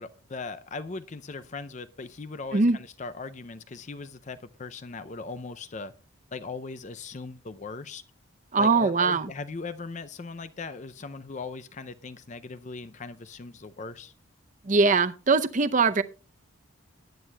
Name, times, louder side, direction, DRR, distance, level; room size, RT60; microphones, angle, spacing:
voice 1, 0.0-5.9 6.3-8.0 8.6-14.1, left 4 dB, 35° left, 12 dB, 0.5 m, -39 dB
voice 2, 8.5-9.3 14.6-16.0, right 4 dB, 35° right, 12 dB, 0.6 m, -22 dB
18.5 x 9.8 x 2.3 m, 0.33 s
head